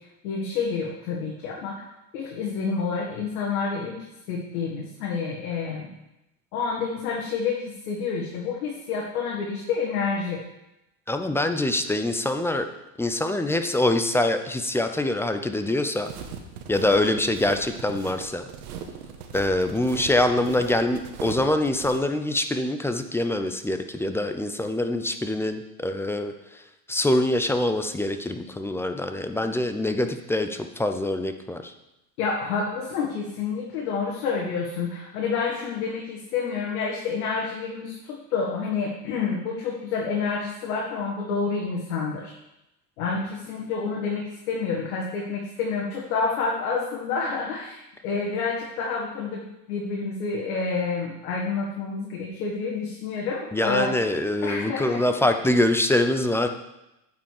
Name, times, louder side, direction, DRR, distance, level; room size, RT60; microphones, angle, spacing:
voice 1, 0.2-1.7 2.1-5.9 6.5-10.4 32.2-42.3 43.0-54.0 54.4-55.0, left 5 dB, 75° left, -3 dB, 2.0 m, -29 dB
voice 2, 11.1-12.7 13.0-16.1 16.7-18.5 19.3-26.6 26.9-31.7 53.5-56.5, left 1 dB, 5° left, 7 dB, 0.5 m, -24 dB
sound 1, 16.0-22.0, right 7 dB, 85° right, 1.4 m, -39 dB
9.0 x 5.3 x 6.5 m, 0.91 s
supercardioid pair, 120°, 43 cm